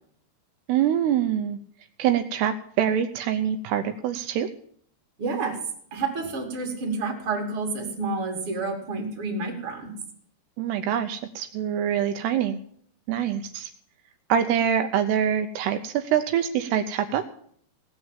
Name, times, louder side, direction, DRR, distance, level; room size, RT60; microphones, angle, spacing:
voice 1, 0.7-1.6 2.0-4.5 10.6-12.6 13.1-13.7 14.3-17.2, right 9 dB, 80° right, 7 dB, 2.7 m, -25 dB
voice 2, 5.2-5.6 5.9-10.0, right 3 dB, 35° right, 2 dB, 3.0 m, -29 dB
18.0 x 6.3 x 9.0 m, 0.62 s
omnidirectional pair, 4.8 m